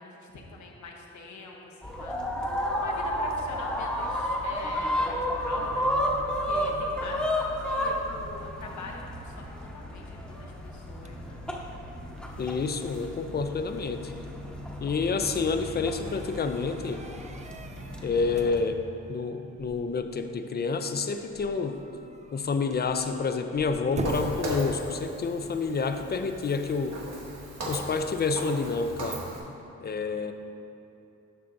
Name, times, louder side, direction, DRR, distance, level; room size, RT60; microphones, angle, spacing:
voice 1, 0.0-2.2 2.8-5.9 6.5-11.4, left 3 dB, 75° left, 0 dB, 1.0 m, -43 dB
sound 1, 1.8-18.6, equal, 5° left, 0.9 m, -32 dB
sound 2, 10.3-25.3, right 3 dB, 25° right, 0.4 m, -44 dB
voice 2, 12.4-14.1 14.8-17.0 18.0-18.8 19.1-21.8 22.3-27.0 27.7-29.2 29.8-30.3, left 4 dB, 35° left, 8 dB, 0.5 m, -28 dB
Walk footsteps, 24.0-29.4, equal, 65° right, 1.3 m, -37 dB
11.0 x 5.7 x 2.6 m, 2.8 s
cardioid pair, 90°, 29 cm